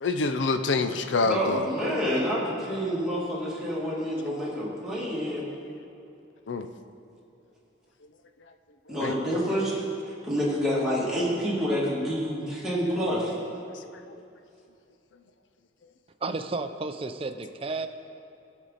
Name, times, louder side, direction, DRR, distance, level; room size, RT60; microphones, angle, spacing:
voice 1, 0.0-1.6 6.5-6.7 9.0-9.1, left 3 dB, 75° left, 8 dB, 0.6 m, -26 dB
voice 2, 1.2-5.4 8.9-9.8 10.2-13.3, equal, 5° right, -8 dB, 2.3 m, -28 dB
voice 3, 16.2-17.9, right 3 dB, 30° right, 8 dB, 0.4 m, -32 dB
17.5 x 6.2 x 4.1 m, 2.7 s
head